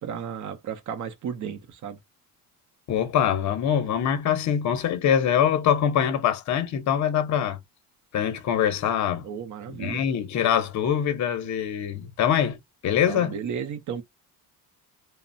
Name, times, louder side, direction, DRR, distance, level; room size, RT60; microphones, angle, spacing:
voice 1, 0.0-2.0 9.2-10.0 13.0-14.0, right 7 dB, 50° right, 0.6 m, -33 dB
voice 2, 2.9-7.6 8.1-9.2 9.8-12.6 12.8-13.4, left 9 dB, 45° left, 0.7 m, -24 dB
3.0 x 2.0 x 2.5 m
cardioid pair, 140°, 39 cm